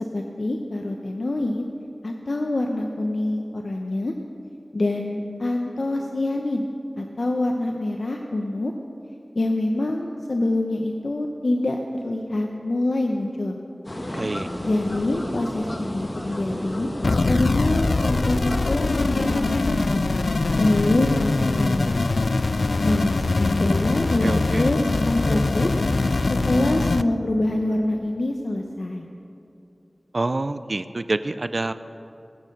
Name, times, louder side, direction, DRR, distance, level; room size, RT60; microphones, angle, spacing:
voice 1, 0.1-1.6 2.0-4.1 4.7-6.6 7.0-8.7 9.4-11.8 12.0-13.6 14.6-16.9 17.3-20.0 20.6-22.0 22.8-25.7 26.3-29.1, left 2 dB, 70° left, 2 dB, 0.9 m, -25 dB
sound 1, 13.8-19.5, left 1 dB, 40° left, 1.4 m, -32 dB
voice 2, 14.1-14.5 24.2-24.7 30.1-31.7, right 2 dB, 60° right, 12 dB, 0.4 m, -27 dB
sound 2, 17.0-27.0, left 3 dB, 85° left, 0.3 m, -22 dB
20.0 x 8.5 x 6.7 m, 2.7 s
wide cardioid pair, 55°, 0 cm